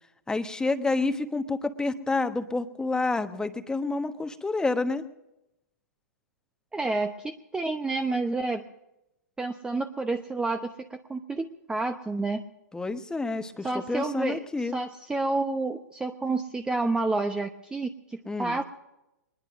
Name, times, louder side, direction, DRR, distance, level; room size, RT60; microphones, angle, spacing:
voice 1, 0.3-5.0 12.7-14.8 18.3-18.6, left 3 dB, 10° left, 9 dB, 1.1 m, -29 dB
voice 2, 6.7-8.6 9.4-12.4 13.6-18.6, right 3 dB, 10° right, 6 dB, 0.8 m, -29 dB
22.5 x 20.5 x 2.6 m, 0.89 s
hypercardioid pair, 120°, 9 cm